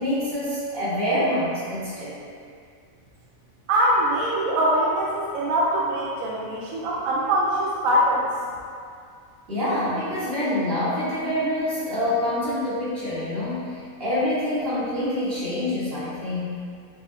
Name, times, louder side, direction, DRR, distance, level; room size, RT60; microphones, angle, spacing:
voice 1, 0.0-2.1 9.5-16.6, left 1 dB, 45° right, -12 dB, 1.8 m, -26 dB
voice 2, 3.7-8.3, right 1 dB, 90° right, -4 dB, 1.0 m, -23 dB
7.5 x 2.9 x 2.2 m, 2.3 s
omnidirectional pair, 1.4 m